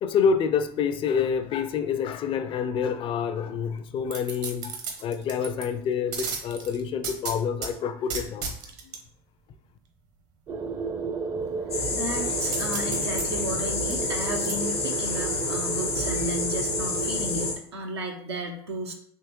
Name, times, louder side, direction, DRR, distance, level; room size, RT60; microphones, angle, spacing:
voice 1, 0.0-8.5 8.8-8.9, left 6 dB, 40° left, 0.4 m, -27 dB
sound 1, 4.1-5.6 6.1-7.7 8.1-9.0 12.4-14.5 15.0-15.1, right 5 dB, 60° right, 0.9 m, -34 dB
sound 2, 10.5-17.5, right 5 dB, 30° right, 0.5 m, -33 dB
sound 3, 11.7-17.5, left 3 dB, 90° left, 0.9 m, -29 dB
voice 2, 11.9-19.0, right 1 dB, 85° right, 0.5 m, -34 dB
3.6 x 2.9 x 3.0 m
hypercardioid pair, 70°, 13 cm